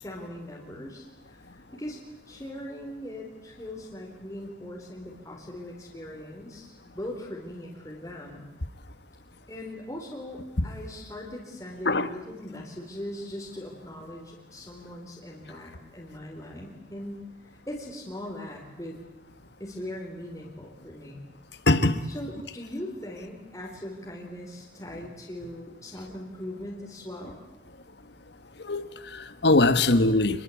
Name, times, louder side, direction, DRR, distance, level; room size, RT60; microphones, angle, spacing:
voice 1, 0.0-2.0 2.3-8.5 9.5-19.0 19.6-21.3 22.1-27.4, left 1 dB, 15° left, 3.9 m, -40 dB
voice 2, 21.7-22.0 28.6-30.4, left 2 dB, 65° left, 1.4 m, -22 dB
28.0 x 21.5 x 8.6 m
head